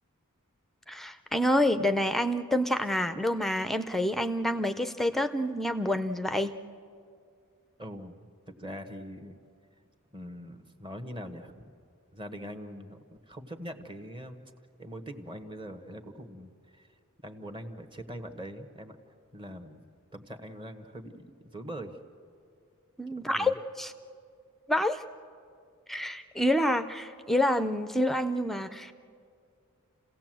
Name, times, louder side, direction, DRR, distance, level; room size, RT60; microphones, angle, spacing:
voice 1, 0.9-6.5 23.0-23.9 24.7-25.0 25.9-28.9, left 1 dB, ahead, 10 dB, 0.5 m, -28 dB
voice 2, 7.8-9.4 10.1-11.7 12.1-13.0 13.3-14.4 14.8-16.9 17.2-19.0 19.3-19.8 20.1-22.0 23.1-23.6, equal, 20° right, 6 dB, 1.2 m, -42 dB
29.0 x 16.5 x 7.6 m, 2.3 s
head